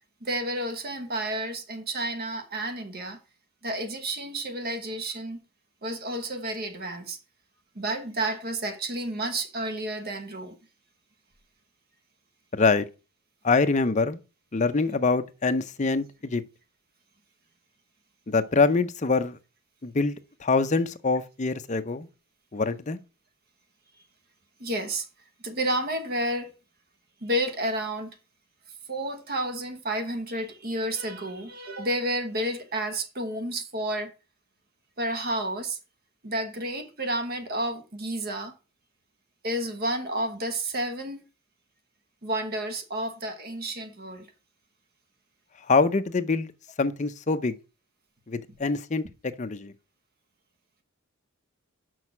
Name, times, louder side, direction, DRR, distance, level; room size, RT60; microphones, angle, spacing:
voice 1, 0.2-3.2 3.6-5.4 5.8-7.2 7.7-10.6 14.9-15.0 24.6-25.0 25.4-26.5 27.2-28.1 28.9-34.1 35.0-35.8 36.2-38.5 39.4-41.2 42.2-44.3, right 1 dB, 45° right, 1.1 m, -31 dB
voice 2, 12.5-12.8 13.4-14.2 14.5-16.4 18.3-19.4 19.8-22.1 22.5-23.0 45.7-46.5 46.8-47.6 48.3-49.7, left 4 dB, 35° left, 0.6 m, -25 dB
6.3 x 5.5 x 5.9 m
head